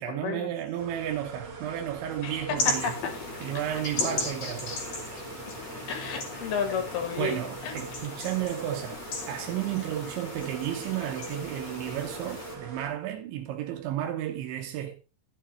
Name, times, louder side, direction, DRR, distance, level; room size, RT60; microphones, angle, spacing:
voice 1, 0.0-3.0 3.4-4.8 7.2-15.0, right 11 dB, 85° right, 3.5 m, -33 dB
sound 1, 0.8-12.9, right 4 dB, 45° right, 2.1 m, -43 dB
voice 2, 2.2-3.1 5.5-5.6 5.9-7.7, left 6 dB, 65° left, 3.5 m, -32 dB
sound 2, 2.6-12.5, left 3 dB, 45° left, 3.2 m, -36 dB
11.5 x 7.8 x 4.3 m
omnidirectional pair, 5.1 m